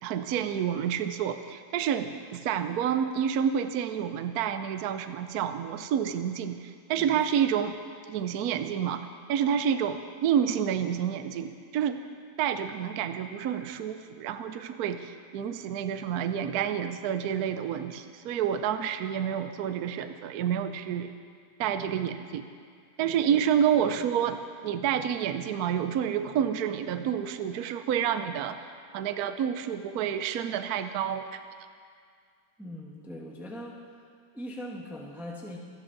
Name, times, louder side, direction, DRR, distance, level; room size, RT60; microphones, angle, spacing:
voice 1, 0.0-7.8 8.1-12.0 12.4-21.1 21.6-22.4 23.0-28.6 28.9-31.4, right 8 dB, 70° right, 9 dB, 0.9 m, -29 dB
voice 2, 32.6-33.8 34.3-35.6, equal, ahead, -2 dB, 1.1 m, -41 dB
28.0 x 10.5 x 3.9 m, 2.1 s
omnidirectional pair, 2.2 m